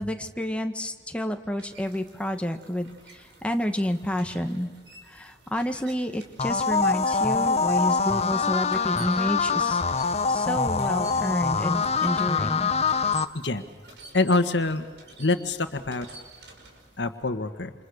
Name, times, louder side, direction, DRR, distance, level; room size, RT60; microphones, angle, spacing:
voice 1, 0.0-4.7 5.1-9.8 10.3-12.7, equal, 5° left, 5 dB, 1.8 m, -29 dB
sound 1, 0.9-17.1, right 3 dB, 75° right, 5.7 m, -50 dB
sound 2, 6.4-13.2, left 4 dB, 35° left, 1.0 m, -24 dB
voice 2, 13.3-13.6 14.1-14.8 15.2-16.1 17.0-17.7, left 2 dB, 85° left, 8 dB, 1.6 m, -25 dB
28.5 x 28.0 x 6.6 m, 1.4 s
head